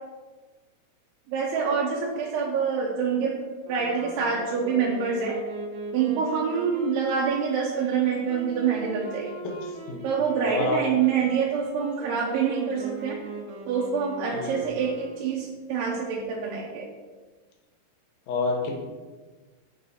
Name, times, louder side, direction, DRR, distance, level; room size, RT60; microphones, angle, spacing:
voice 1, 1.3-3.4 3.7-5.4 5.9-9.3 10.0-13.2 13.7-16.9, right 6 dB, 85° right, -3 dB, 2.8 m, -26 dB
sound 1, 3.6-15.5, right 3 dB, 70° right, 2.4 m, -40 dB
voice 2, 10.5-10.8 14.3-14.6 18.3-18.8, left 3 dB, 75° left, 0 dB, 1.6 m, -27 dB
7.7 x 4.1 x 4.1 m, 1.3 s
omnidirectional pair, 4.6 m